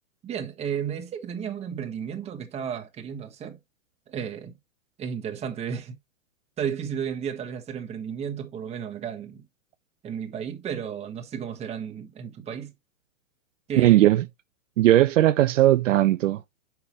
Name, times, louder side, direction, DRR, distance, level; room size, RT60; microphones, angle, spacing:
voice 1, 0.2-3.6 4.1-4.5 5.0-6.0 6.6-9.4 10.0-12.7 13.7-14.1, right 8 dB, 15° right, 1.3 m, -33 dB
voice 2, 13.8-14.2 14.8-16.4, right 14 dB, 70° right, 0.6 m, -18 dB
6.7 x 5.8 x 3.0 m
hypercardioid pair, 140°, 40 cm